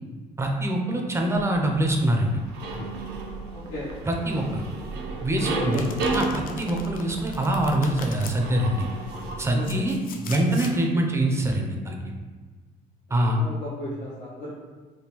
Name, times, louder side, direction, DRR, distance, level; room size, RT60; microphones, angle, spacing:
voice 1, 0.4-2.4 4.1-4.6 5.2-5.8 6.1-8.9 9.4-10.0 10.3-12.0 13.1-13.4, right 1 dB, 15° right, 1 dB, 0.4 m, -24 dB
sound 1, 1.3-9.9, right 3 dB, 80° right, 0.5 m, -34 dB
voice 2, 3.5-3.9 5.5-5.9 9.5-9.8 13.4-14.5, left 1 dB, 85° left, -9 dB, 0.8 m, -35 dB
Domestic sounds home sounds, 5.7-8.4 9.1-10.8, left 5 dB, 55° left, 0.4 m, -39 dB
3.5 x 2.2 x 2.9 m, 1.4 s
cardioid pair, 110°, 17 cm